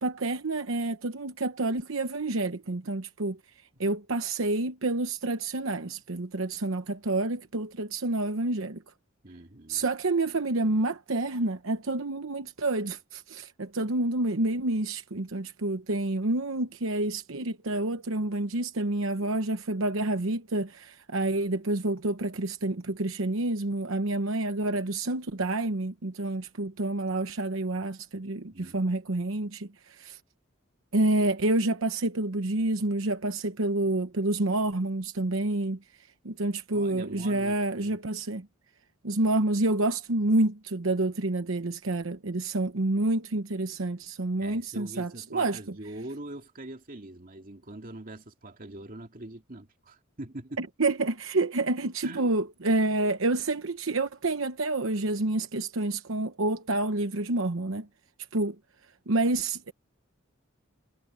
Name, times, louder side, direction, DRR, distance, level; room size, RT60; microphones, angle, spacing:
voice 1, 0.0-3.4 3.8-8.8 9.7-30.2 30.9-35.8 36.2-38.5 39.0-45.6 50.6-57.9 58.3-58.6 59.1-59.7, right 2 dB, 75° right, 1.0 m, -28 dB
voice 2, 9.2-9.8 28.5-28.9 36.7-38.0 44.4-50.6 52.0-52.3, right 2 dB, 45° right, 2.5 m, -43 dB
head